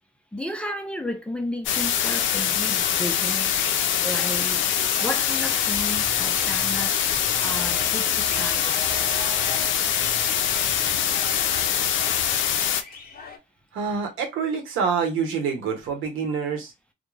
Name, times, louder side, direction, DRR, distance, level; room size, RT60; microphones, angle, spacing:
voice 1, 0.3-3.6 4.0-4.6 5.0-8.9, left 1 dB, 5° left, 0.5 m, -33 dB
sound 1, 1.7-12.8, left 9 dB, 75° left, 0.4 m, -24 dB
sound 2, 2.8-13.4, left 4 dB, 50° left, 0.8 m, -41 dB
sound 3, 5.7-12.5, right 1 dB, 40° right, 1.0 m, -42 dB
voice 2, 13.7-16.7, right 6 dB, 85° right, 1.0 m, -26 dB
2.4 x 2.1 x 3.1 m
cardioid pair, 90°, 20 cm